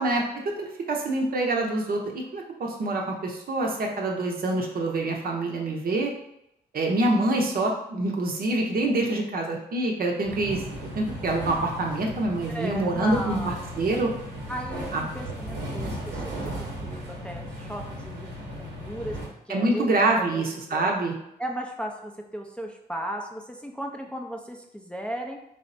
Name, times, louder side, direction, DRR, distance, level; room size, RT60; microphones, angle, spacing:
voice 1, 0.0-6.1 6.7-14.1 14.9-15.0 19.5-21.1, right 2 dB, 60° right, 0 dB, 0.6 m, -26 dB
sound 1, 10.2-19.3, equal, 85° right, 0.8 m, -36 dB
voice 2, 12.5-13.7 14.5-19.2 19.5-20.0 20.3-20.4 20.7-20.9 21.4-25.4, equal, 5° left, 1 dB, 0.4 m, -36 dB
3.3 x 2.0 x 2.5 m, 0.80 s
cardioid pair, 55°, 18 cm